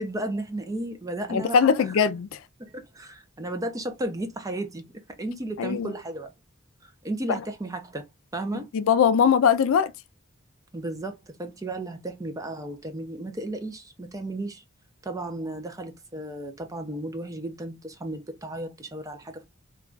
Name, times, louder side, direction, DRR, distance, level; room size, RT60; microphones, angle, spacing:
voice 1, 0.0-2.0 2.6-6.3 6.8-8.1 8.3-8.7 10.7-14.6 15.0-19.5, right 1 dB, 15° right, 0.5 m, -34 dB
voice 2, 1.3-2.4 5.6-5.9 8.7-9.9, left 7 dB, 70° left, 0.3 m, -21 dB
2.3 x 2.2 x 3.7 m
head